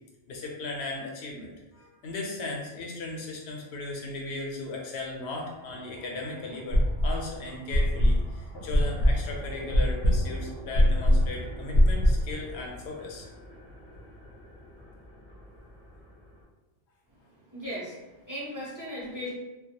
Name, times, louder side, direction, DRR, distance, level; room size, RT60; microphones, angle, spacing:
voice 1, 0.3-13.3, left 2 dB, 80° left, 0 dB, 0.9 m, -37 dB
sound 1, 5.1-16.4, left 1 dB, 25° left, 0.5 m, -47 dB
sound 2, 6.7-7.3 7.7-12.3, equal, 65° right, 0.7 m, -22 dB
voice 2, 17.5-19.3, equal, 20° right, -8 dB, 0.6 m, -37 dB
2.2 x 2.1 x 2.8 m, 1.1 s
omnidirectional pair, 1.1 m